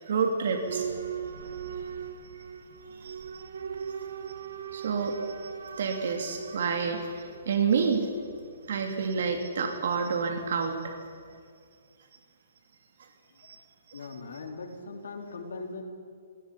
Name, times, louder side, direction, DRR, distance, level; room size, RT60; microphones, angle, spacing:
voice 1, 0.1-0.9 3.0-3.4 4.7-5.5 5.8-8.1 8.7-10.9 13.9-14.0, right 5 dB, 65° right, 4 dB, 3.0 m, -29 dB
Boat Water vehicle / Alarm, 0.7-11.3, right 7 dB, 90° right, 2.0 m, -40 dB
voice 2, 13.9-15.8, left 3 dB, 85° left, 2 dB, 4.1 m, -40 dB
19.5 x 18.5 x 9.9 m, 2.2 s
hypercardioid pair, 165°, 0 cm